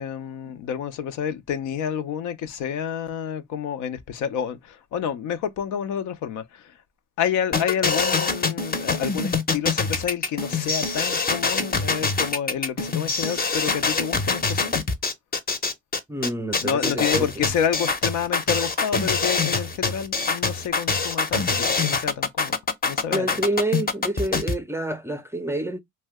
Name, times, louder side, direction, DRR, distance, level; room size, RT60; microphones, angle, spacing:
voice 1, 0.0-6.7 7.2-14.7 16.6-22.5 22.8-23.4, left 8 dB, 80° left, 0.5 m, -29 dB
sound 1, 7.5-24.5, left 4 dB, 30° left, 0.6 m, -24 dB
voice 2, 16.1-17.3 23.1-25.8, right 2 dB, 10° right, 0.4 m, -27 dB
2.6 x 2.2 x 3.4 m
cardioid pair, 90°, 30 cm